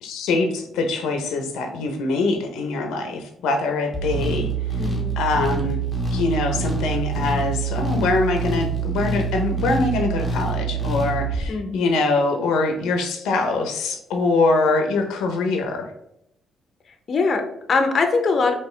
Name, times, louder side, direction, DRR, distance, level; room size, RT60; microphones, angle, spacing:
voice 1, 0.0-4.5 5.2-5.8 6.1-15.9, left 3 dB, 90° left, 4 dB, 0.6 m, -23 dB
sound 1, 3.9-11.5, right 4 dB, 10° left, 1.3 m, -25 dB
voice 2, 4.8-5.2 11.5-11.9 17.1-18.5, left 4 dB, 50° left, 6 dB, 0.7 m, -22 dB
4.8 x 2.9 x 3.2 m, 0.79 s
cardioid pair, 90°, 0 cm